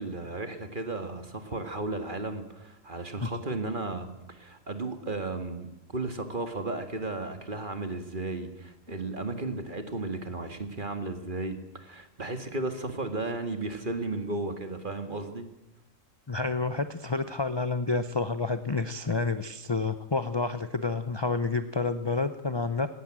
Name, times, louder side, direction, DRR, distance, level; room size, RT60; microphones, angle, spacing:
voice 1, 0.0-15.5, right 2 dB, 35° right, 7 dB, 2.2 m, -34 dB
voice 2, 16.3-22.9, left 3 dB, 25° left, 10 dB, 0.6 m, -29 dB
19.0 x 17.0 x 8.9 m, 0.90 s
omnidirectional pair, 1.4 m